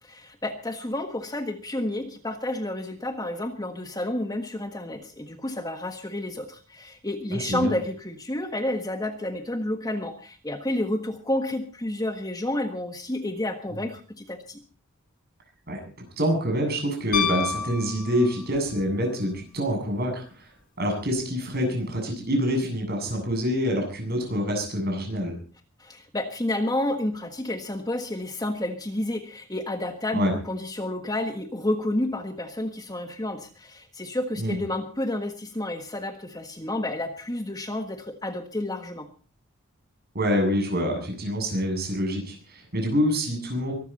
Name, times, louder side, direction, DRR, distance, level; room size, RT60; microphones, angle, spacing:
voice 1, 0.0-14.6 25.8-39.1, left 1 dB, 20° left, 6 dB, 1.4 m, -30 dB
voice 2, 7.3-7.7 15.7-15.8 16.2-20.5 20.8-25.3 30.1-30.3 34.4-34.6 40.1-43.7, equal, 45° right, 3 dB, 7.7 m, -26 dB
Piano, 17.1-18.7 21.1-21.2, left 7 dB, 40° left, 2.1 m, -29 dB
23.5 x 13.0 x 4.2 m, 0.39 s
head